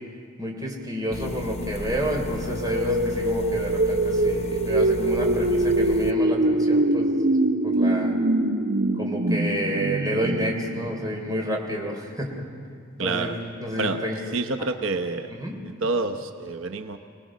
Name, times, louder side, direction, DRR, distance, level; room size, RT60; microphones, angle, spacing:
voice 1, 0.4-7.4 7.6-8.2 9.0-12.3 13.0-13.3 13.6-14.2 15.4-15.6, equal, 20° right, 0 dB, 3.6 m, -29 dB
sound 1, 1.1-6.1, left 3 dB, 35° left, 0.7 m, -35 dB
sound 2, 2.4-11.3, right 1 dB, 60° right, 1.1 m, -23 dB
voice 2, 13.0-13.4 13.7-14.0 14.3-15.3 15.6-17.0, right 3 dB, 85° right, 5 dB, 0.9 m, -28 dB
26.5 x 19.0 x 6.3 m, 2.2 s
head